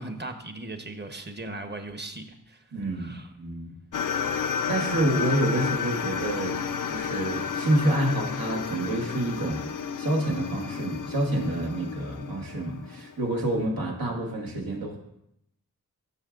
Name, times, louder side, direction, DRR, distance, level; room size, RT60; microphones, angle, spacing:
voice 1, 0.0-2.6 2.9-3.3, right 2 dB, 30° right, 6 dB, 0.9 m, -38 dB
voice 2, 2.7-3.7 4.7-6.6 6.9-9.6 10.0-15.0, right 1 dB, 85° right, -1 dB, 1.7 m, -28 dB
sound 1, 3.9-13.4, left 6 dB, 65° left, 0.5 m, -31 dB
11.5 x 6.3 x 2.5 m, 0.78 s
wide cardioid pair, 70°, 34 cm